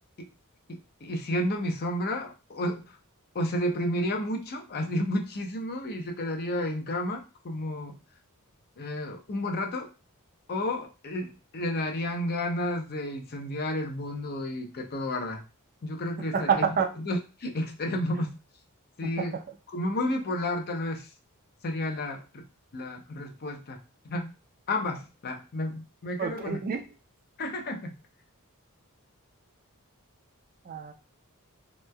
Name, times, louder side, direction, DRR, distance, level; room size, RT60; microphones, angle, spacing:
voice 1, 0.7-3.0 3.3-8.0 8.8-9.9 10.5-15.4 15.8-16.6 17.0-18.4 19.0-19.3 19.7-21.1 21.6-22.5 22.7-24.3 24.7-26.6 27.4-27.9, left 1 dB, 45° left, 4 dB, 0.6 m, -31 dB
voice 2, 16.3-16.9 19.0-19.4 26.2-26.8 30.6-30.9, right 6 dB, 40° right, 7 dB, 0.4 m, -28 dB
3.1 x 3.0 x 2.2 m, 0.31 s
head